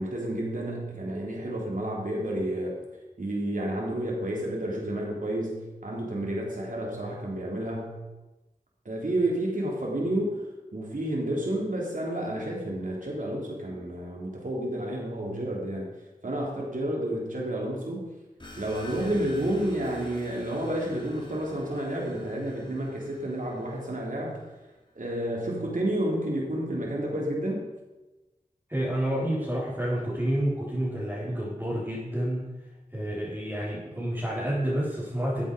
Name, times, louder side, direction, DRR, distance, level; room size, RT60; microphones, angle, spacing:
voice 1, 0.0-2.8 3.2-8.0 8.9-10.4 10.7-15.9 16.2-18.1 18.6-24.4 25.0-27.7, right 1 dB, 65° right, -2 dB, 3.4 m, -30 dB
sound 1, 18.4-24.7, left 1 dB, 30° left, 2.5 m, -47 dB
voice 2, 28.7-32.5 32.9-35.4, right 1 dB, 15° right, -12 dB, 4.6 m, -29 dB
13.5 x 8.5 x 5.1 m, 1.1 s
wide cardioid pair, 75°, 15 cm